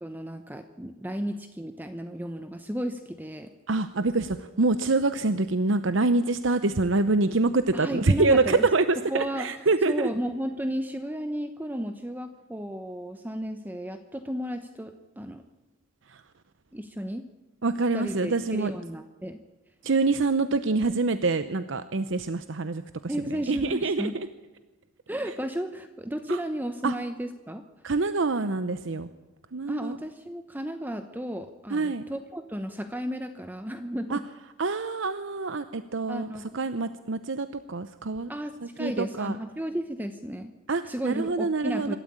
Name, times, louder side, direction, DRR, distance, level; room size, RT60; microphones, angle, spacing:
voice 1, 0.0-3.5 7.7-8.6 9.1-9.5 9.9-15.4 16.7-17.2 17.9-19.4 23.1-24.1 25.1-27.6 29.7-34.2 36.1-36.6 38.3-40.5 40.8-42.0, equal, 10° right, 8 dB, 0.9 m, -33 dB
voice 2, 3.7-10.1 16.1-16.2 17.6-18.7 19.8-24.3 26.3-26.4 26.8-27.0 27.8-29.1 29.5-30.0 31.7-32.0 34.1-34.2 34.6-38.3 38.8-39.4 40.7-42.0, right 3 dB, 65° right, 12 dB, 0.8 m, -26 dB
25.5 x 13.0 x 8.8 m, 1.1 s
head